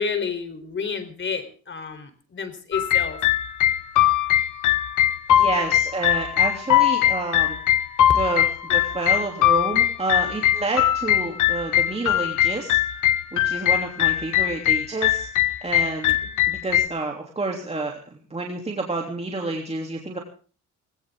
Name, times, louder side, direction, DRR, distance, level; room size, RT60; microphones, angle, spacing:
voice 1, 0.0-3.2, left 5 dB, 40° left, 9 dB, 4.0 m, -30 dB
sound 1, 2.7-16.9, left 12 dB, 80° left, 1.0 m, -21 dB
voice 2, 5.3-7.6 8.1-12.8 13.3-16.2 16.5-20.2, right 3 dB, 20° right, 0 dB, 3.1 m, -29 dB
19.5 x 18.0 x 3.8 m, 0.40 s
cardioid pair, 90°, 30 cm